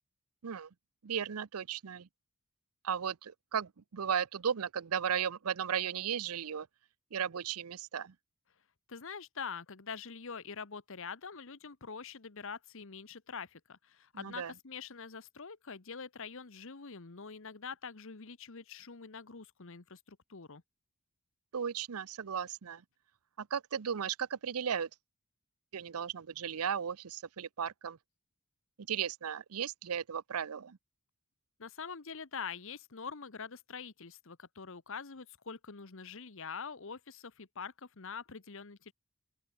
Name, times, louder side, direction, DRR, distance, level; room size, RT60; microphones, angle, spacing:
voice 1, 1.0-2.1 2.8-6.7 7.1-8.1 14.1-14.5 21.5-22.8 23.4-24.9 25.7-28.0 28.8-30.8, right 8 dB, 80° right, 0.6 m, -35 dB
voice 2, 8.9-20.6 31.6-38.9, left 5 dB, 60° left, 1.1 m, -45 dB
open air
head